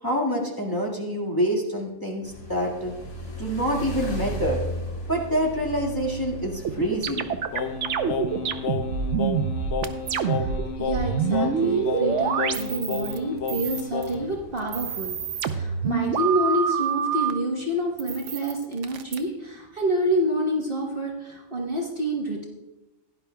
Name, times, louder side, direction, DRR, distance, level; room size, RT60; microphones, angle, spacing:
voice 1, 0.0-2.9 3.4-4.6 5.1-7.3, equal, 15° left, -3 dB, 1.7 m, -26 dB
sound 1, 2.2-15.9, right 1 dB, 75° left, 2.9 m, -38 dB
sound 2, 6.6-10.6 10.8-13.2 13.5-14.1 14.6-17.3 18.0-19.2, right 7 dB, 65° right, 0.9 m, -26 dB
Singing, 7.5-14.4, left 5 dB, 60° left, 0.8 m, -31 dB
voice 2, 10.2-22.4, right 1 dB, 40° right, -1 dB, 1.3 m, -28 dB
17.0 x 10.5 x 2.3 m, 1.0 s
omnidirectional pair, 1.5 m